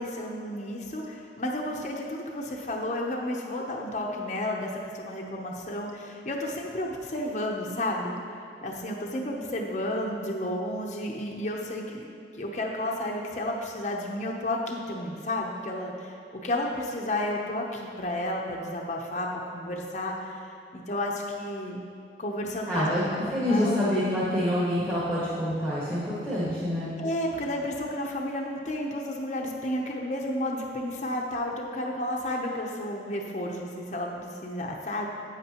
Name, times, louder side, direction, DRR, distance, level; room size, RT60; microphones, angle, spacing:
voice 1, 0.0-8.2 8.6-12.1 12.4-16.2 16.4-19.3 19.5-20.4 20.7-21.8 22.2-23.8 27.0-35.1, left 1 dB, 40° left, -1 dB, 0.7 m, -32 dB
voice 2, 22.7-23.0 23.3-26.9, equal, 20° right, -9 dB, 1.5 m, -26 dB
11.0 x 8.4 x 2.9 m, 2.4 s
head